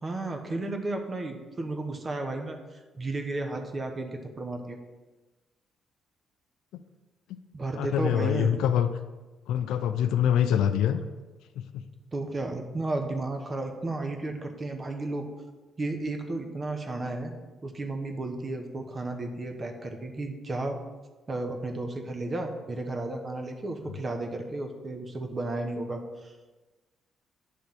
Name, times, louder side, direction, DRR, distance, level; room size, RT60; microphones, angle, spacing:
voice 1, 0.0-4.8 7.5-8.5 12.1-15.3 15.8-17.3 17.6-20.8 21.3-26.3, right 2 dB, 35° right, 4 dB, 1.1 m, -33 dB
voice 2, 7.7-8.9 9.5-11.0 11.6-11.8, left 9 dB, 90° left, 10 dB, 0.5 m, -25 dB
9.4 x 3.4 x 5.9 m, 1.2 s
cardioid pair, 90°, 0 cm